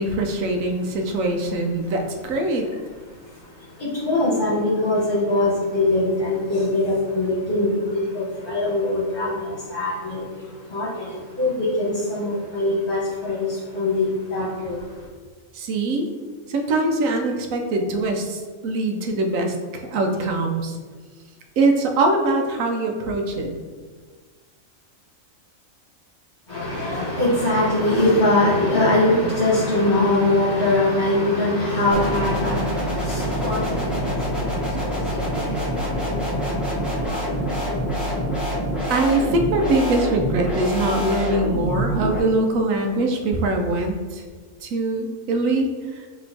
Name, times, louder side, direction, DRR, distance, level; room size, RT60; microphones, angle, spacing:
voice 1, 0.0-2.7 15.5-16.1 16.5-20.8 21.6-23.5 38.9-44.2 44.6-46.1, right 2 dB, 85° right, 3 dB, 1.0 m, -23 dB
voice 2, 3.8-10.2 10.7-11.1 11.4-13.5 13.7-14.8 26.5-34.5 34.8-35.2 35.5-36.4 37.0-37.2, left 2 dB, 45° left, -7 dB, 1.2 m, -22 dB
sound 1, 31.9-42.2, equal, ahead, 0.8 m, -26 dB
6.2 x 3.0 x 2.8 m, 1.5 s
omnidirectional pair, 1.4 m